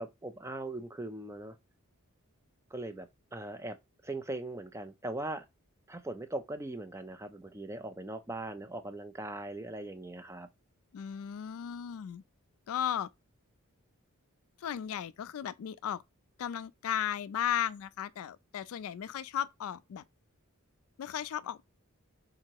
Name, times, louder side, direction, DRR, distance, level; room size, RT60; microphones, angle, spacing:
voice 1, 0.0-1.6 2.7-3.8 4.0-5.4 5.9-10.5, right 2 dB, 10° right, 0.4 m, -40 dB
voice 2, 10.9-12.2 12.7-13.1 14.6-16.0 16.4-20.0 21.0-21.6, left 9 dB, 70° left, 0.3 m, -35 dB
3.7 x 2.9 x 4.5 m
head